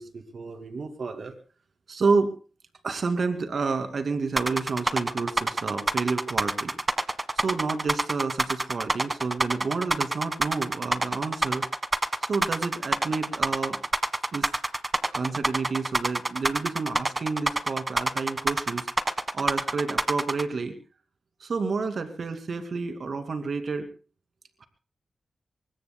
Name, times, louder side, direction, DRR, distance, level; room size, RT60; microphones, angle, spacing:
voice 1, 0.0-1.3 1.9-2.3 2.8-6.7 7.4-11.7 12.2-13.8 14.3-14.5 15.1-18.9 19.3-20.7 21.4-23.9, right 4 dB, 65° right, 7 dB, 2.4 m, -29 dB
sound 1, 4.4-20.4, right 2 dB, 30° right, 1.4 m, -26 dB
24.0 x 21.5 x 2.2 m, 0.35 s
cardioid pair, 45°, 0 cm